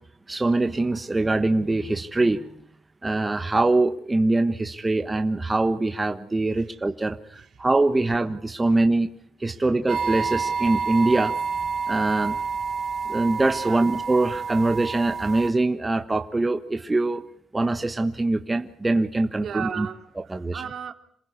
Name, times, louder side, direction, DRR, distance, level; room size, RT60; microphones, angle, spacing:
voice 1, 0.3-2.4 3.0-9.1 9.4-11.3 11.9-12.4 13.1-17.2 17.5-19.9 20.3-20.6, right 2 dB, 20° right, 1.3 m, -23 dB
sound 1, 9.9-15.5, right 5 dB, 40° right, 2.0 m, -28 dB
voice 2, 19.4-20.9, right 7 dB, 60° right, 2.7 m, -35 dB
27.5 x 16.5 x 9.7 m
cardioid pair, 90°, 0 cm